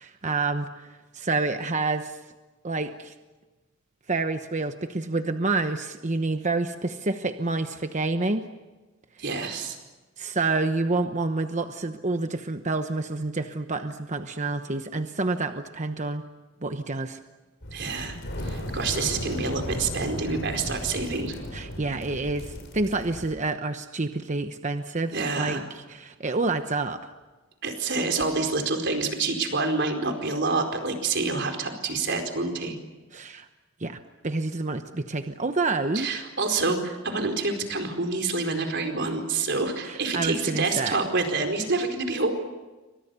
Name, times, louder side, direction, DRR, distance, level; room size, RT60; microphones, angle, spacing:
voice 1, 0.0-2.2 2.6-3.1 4.1-8.5 10.2-16.2 16.6-17.2 21.5-27.1 33.1-33.5 33.8-36.1 39.9-41.0, right 3 dB, 35° right, 7 dB, 1.0 m, -28 dB
voice 2, 9.2-9.8 17.7-18.2 18.4-21.4 25.1-25.6 27.6-32.8 35.9-42.3, right 3 dB, 55° right, 5 dB, 4.6 m, -27 dB
sound 1, 17.6-23.3, equal, 60° left, 5.8 m, -35 dB
29.5 x 25.0 x 7.0 m, 1.2 s
head